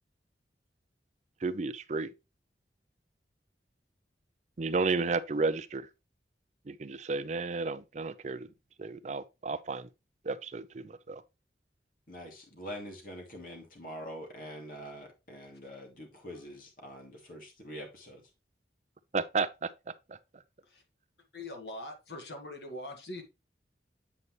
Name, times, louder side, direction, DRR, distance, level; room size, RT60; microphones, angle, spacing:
voice 1, 1.4-2.1 4.6-5.9 6.7-8.5 8.8-9.9 10.3-11.2 19.1-19.7 20.1-20.2, right 4 dB, 40° right, 0.5 m, -32 dB
voice 2, 12.1-18.2, equal, 50° left, 2.6 m, -44 dB
voice 3, 21.3-23.2, left 1 dB, 70° left, 1.8 m, -42 dB
8.3 x 5.4 x 3.1 m
head